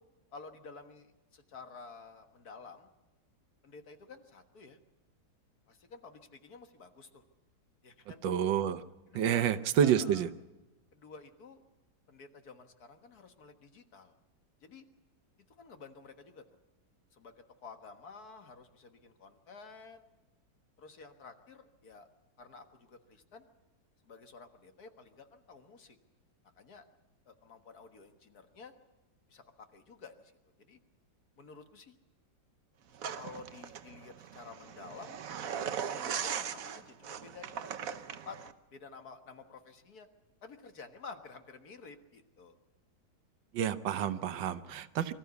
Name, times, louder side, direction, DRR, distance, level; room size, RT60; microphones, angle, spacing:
voice 1, 0.3-2.9 3.6-4.8 5.7-7.2 7.8-8.2 9.1-9.5 9.8-10.3 10.9-11.6 12.1-14.1 14.6-14.9 15.6-16.4 17.1-20.1 20.8-22.1 22.4-23.5 24.0-26.0 26.6-26.9 27.3-28.7 29.3-30.3 30.6-30.8 31.4-32.0 33.2-35.1 35.9-38.4 38.7-40.1 40.4-42.6, left 4 dB, 55° left, 7 dB, 1.9 m, -51 dB
voice 2, 8.2-8.8 9.1-10.3 43.5-45.1, right 9 dB, 80° right, 12 dB, 1.6 m, -29 dB
sound 1, 33.0-38.5, right 8 dB, 55° right, 1.2 m, -39 dB
24.5 x 14.0 x 8.2 m, 1.1 s
omnidirectional pair, 2.0 m